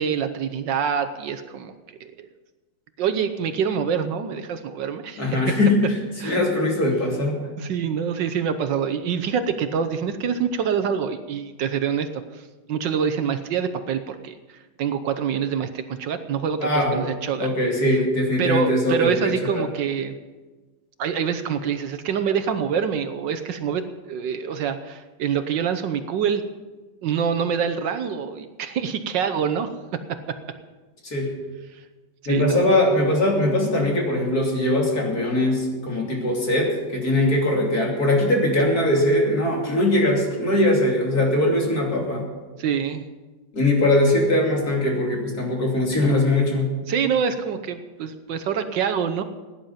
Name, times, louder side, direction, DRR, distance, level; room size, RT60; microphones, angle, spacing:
voice 1, 0.0-1.7 2.0-2.3 3.0-5.5 6.2-6.4 7.6-12.1 12.3-12.4 12.7-17.5 18.4-20.1 21.0-23.8 24.1-26.4 27.0-29.7 30.1-30.4 31.7-31.8 32.3-32.7 42.6-43.0 46.9-49.2, right 7 dB, 70° right, 10 dB, 1.4 m, -26 dB
voice 2, 5.2-5.8 6.2-7.4 16.6-17.0 17.4-19.7 31.0-31.3 32.3-42.3 43.5-46.7, left 1 dB, 50° left, -1 dB, 3.3 m, -21 dB
16.5 x 10.5 x 5.7 m, 1.2 s
omnidirectional pair, 2.1 m